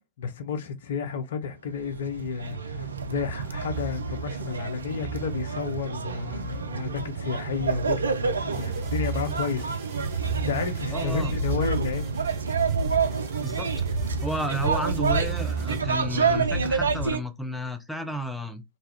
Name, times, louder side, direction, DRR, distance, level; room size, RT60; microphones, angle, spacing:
voice 1, 0.0-9.7 10.2-12.3, left 6 dB, 60° left, 0.6 m, -32 dB
sound 1, 1.7-17.2, right 5 dB, 75° right, 0.3 m, -28 dB
sound 2, 8.5-15.8, right 7 dB, 40° right, 0.8 m, -48 dB
voice 2, 10.9-11.4 13.4-13.7 14.2-18.6, equal, ahead, 0.5 m, -32 dB
2.6 x 2.3 x 3.2 m
figure-of-eight pair, 90°, 0 cm